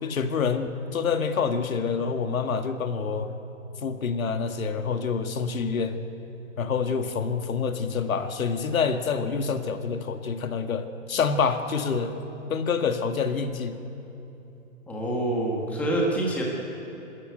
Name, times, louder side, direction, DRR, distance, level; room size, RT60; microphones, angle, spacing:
voice 1, 0.0-3.3 3.8-6.0 6.6-12.1 12.5-13.8, left 5 dB, 90° left, 7 dB, 1.8 m, -27 dB
voice 2, 14.9-16.4, right 1 dB, 5° left, -3 dB, 1.4 m, -26 dB
25.0 x 13.0 x 9.3 m, 2.9 s
hypercardioid pair, 175°, 40 cm